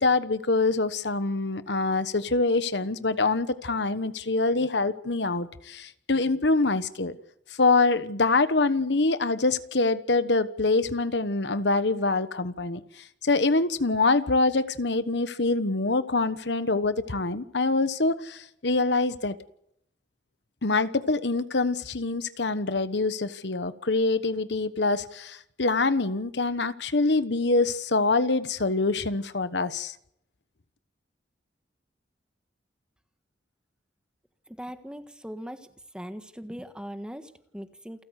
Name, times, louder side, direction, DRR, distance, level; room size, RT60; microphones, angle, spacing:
voice 1, 0.0-7.2 7.6-19.4 20.6-29.9, left 3 dB, 70° left, 1.2 m, -25 dB
voice 2, 34.5-35.7 35.9-38.0, equal, 5° right, 1.5 m, -40 dB
29.0 x 14.0 x 8.2 m
head